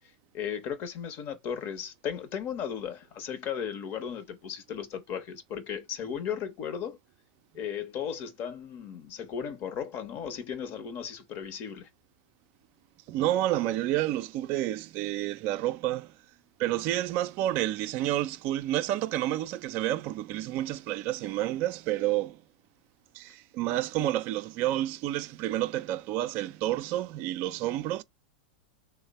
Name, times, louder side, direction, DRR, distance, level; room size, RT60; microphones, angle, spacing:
voice 1, 0.3-7.0 7.5-11.9, left 8 dB, 45° left, 0.8 m, -36 dB
voice 2, 13.1-16.1 16.6-22.4 23.1-28.0, right 14 dB, 45° right, 0.3 m, -29 dB
3.2 x 2.0 x 4.0 m
hypercardioid pair, 115°, 5 cm